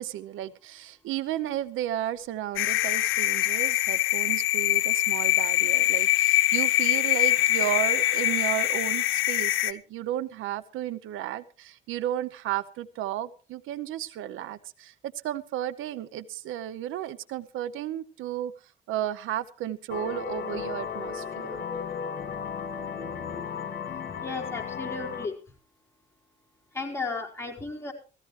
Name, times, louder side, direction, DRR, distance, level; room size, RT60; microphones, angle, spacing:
voice 1, 0.0-18.5 18.9-21.6, right 12 dB, 90° right, 16 dB, 0.8 m, -33 dB
sound 1, 2.6-9.7, left 16 dB, 90° left, 0.7 m, -24 dB
sound 2, 19.9-25.3, left 6 dB, 55° left, 1.9 m, -35 dB
voice 2, 24.2-25.3 26.7-27.9, left 3 dB, 10° left, 0 dB, 4.4 m, -34 dB
18.0 x 15.0 x 3.2 m, 0.36 s
cardioid pair, 90°, 20 cm